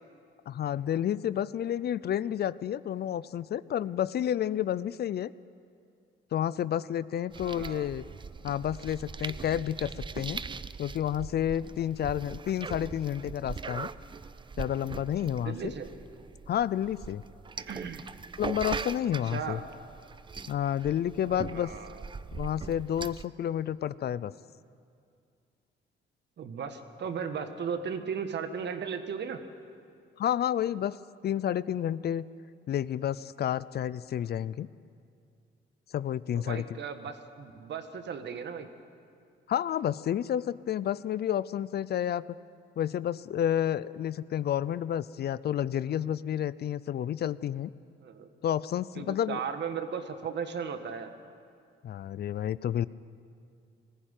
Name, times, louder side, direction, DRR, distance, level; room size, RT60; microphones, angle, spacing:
voice 1, 0.5-5.3 6.3-8.0 8.4-10.4 10.8-13.9 14.6-15.7 16.5-17.2 18.4-19.6 20.5-21.7 22.3-24.3 30.2-31.0 31.2-32.3 32.7-34.7 35.9-36.8 39.5-42.2 42.8-47.7 48.4-49.4 51.8-52.9, left 10 dB, 55° left, 18 dB, 0.5 m, -30 dB
sound 1, 7.3-23.2, right 5 dB, 25° right, 0.5 m, -41 dB
voice 2, 7.4-7.9 15.4-15.9 17.7-18.1 19.2-19.7 21.2-22.0 26.4-29.4 36.3-38.7 48.0-48.3 48.9-51.1, right 6 dB, 60° right, 8 dB, 1.6 m, -36 dB
20.0 x 15.0 x 9.1 m, 2.4 s
cardioid pair, 90°, 20 cm